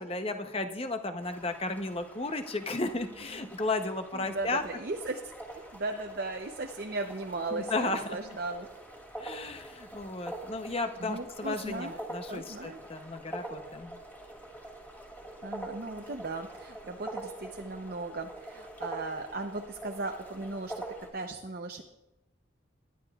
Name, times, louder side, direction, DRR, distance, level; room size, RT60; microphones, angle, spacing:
voice 1, 0.0-4.6 7.5-8.2 9.2-14.0, left 2 dB, 30° left, 7 dB, 0.7 m, -34 dB
sound 1, 1.2-21.1, right 1 dB, 10° left, 2.6 m, -45 dB
voice 2, 4.1-5.2 5.5-8.7 11.0-12.0 12.3-12.8 15.4-20.8 21.1-21.8, right 2 dB, 50° right, 3 dB, 0.7 m, -37 dB
19.5 x 11.5 x 2.4 m, 0.95 s
head